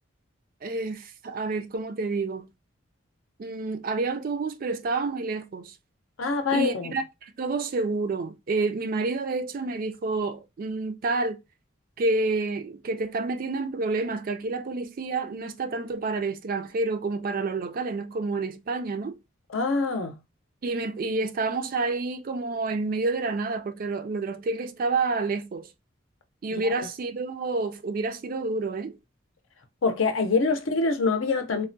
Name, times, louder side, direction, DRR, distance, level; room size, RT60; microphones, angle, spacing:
voice 1, 0.6-2.5 3.4-5.7 6.5-11.4 12.0-19.2 20.6-25.7 26.4-29.0, right 3 dB, 45° right, 0.4 m, -29 dB
voice 2, 6.2-6.9 19.5-20.2 29.8-31.6, left 4 dB, 75° left, 0.6 m, -25 dB
3.4 x 2.1 x 2.6 m
head